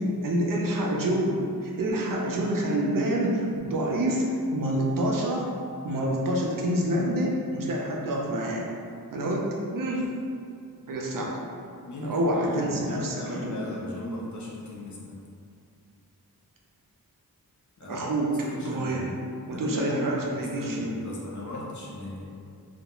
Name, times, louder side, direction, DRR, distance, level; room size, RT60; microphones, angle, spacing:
voice 1, 0.2-4.2 4.5-5.5 5.8-8.6 9.1-9.5 9.7-10.1 10.9-11.4 12.0-13.5 17.8-19.2 19.5-20.9, right 1 dB, 65° right, -2 dB, 0.5 m, -27 dB
voice 2, 11.8-15.3 17.8-18.1 18.4-19.1 19.5-22.4, left 1 dB, 50° left, -4 dB, 0.6 m, -36 dB
2.3 x 2.1 x 2.9 m, 2.4 s
cardioid pair, 40°, 37 cm